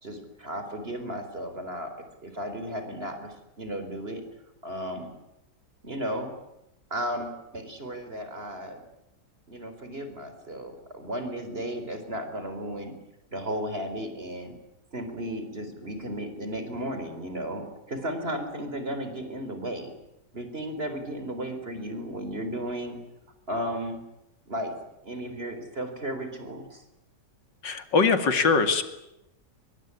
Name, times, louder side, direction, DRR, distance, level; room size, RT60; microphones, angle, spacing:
voice 1, 0.0-1.9 2.2-4.2 4.6-5.1 5.8-6.3 6.9-8.8 9.5-12.9 13.3-14.5 14.9-19.9 20.3-23.0 23.5-24.0 24.5-24.7 25.0-26.8, equal, 35° right, 8 dB, 4.5 m, -34 dB
voice 2, 27.6-28.8, left 4 dB, 85° left, 9 dB, 2.9 m, -22 dB
24.5 x 22.0 x 9.8 m, 0.89 s
omnidirectional pair, 1.9 m